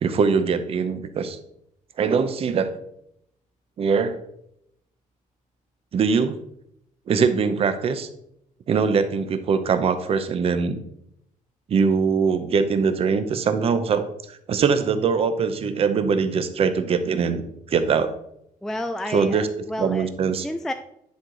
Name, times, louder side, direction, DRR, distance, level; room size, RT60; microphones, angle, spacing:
voice 1, 0.0-1.4 2.0-2.7 3.8-4.2 5.9-6.4 7.1-8.1 8.7-10.8 11.7-14.0 14.5-18.1 19.1-19.5 19.8-20.5, right 5 dB, 40° right, 10 dB, 0.8 m, -22 dB
voice 2, 18.6-20.1 20.4-20.7, left 1 dB, 5° left, 8 dB, 0.3 m, -30 dB
10.5 x 4.8 x 3.9 m, 0.75 s
cardioid pair, 165°, 15 cm